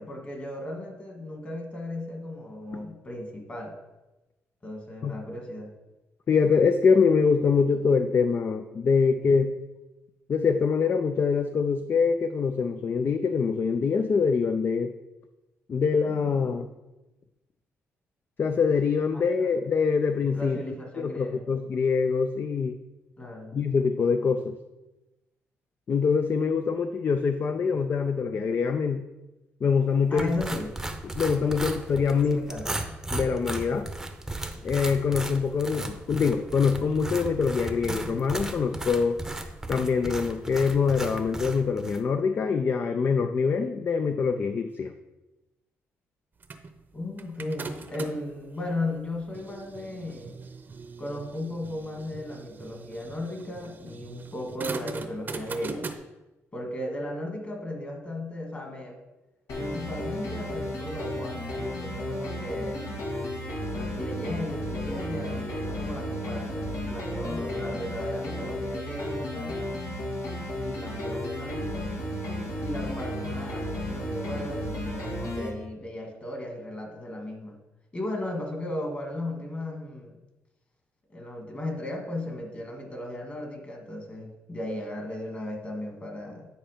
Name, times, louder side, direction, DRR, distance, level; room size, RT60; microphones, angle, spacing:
voice 1, 0.0-3.8 4.6-5.7 19.1-19.2 20.3-21.5 23.2-23.6 30.1-30.7 32.2-32.7 46.9-50.4 51.0-55.9 56.5-59.0 59.6-63.0 63.7-69.6 70.5-71.9 72.6-77.6 77.9-80.2 81.1-86.5, left 1 dB, 30° left, 1 dB, 2.1 m, -36 dB
voice 2, 6.3-9.5 10.3-14.9 15.7-16.7 18.4-20.6 21.0-22.8 23.5-24.5 25.9-29.0 29.6-30.3 31.1-32.4 33.1-33.9 34.6-39.2 39.7-44.9, left 5 dB, 45° left, 8 dB, 0.4 m, -24 dB
sound 1, 30.2-42.0, right 2 dB, 10° right, 0.8 m, -36 dB
sound 2, 46.4-48.3 49.0-55.9, right 4 dB, 40° right, 0.7 m, -40 dB
sound 3, 59.5-75.5, left 1 dB, 75° left, 1.9 m, -33 dB
9.4 x 4.4 x 5.1 m, 1.0 s
cardioid pair, 105°, 5 cm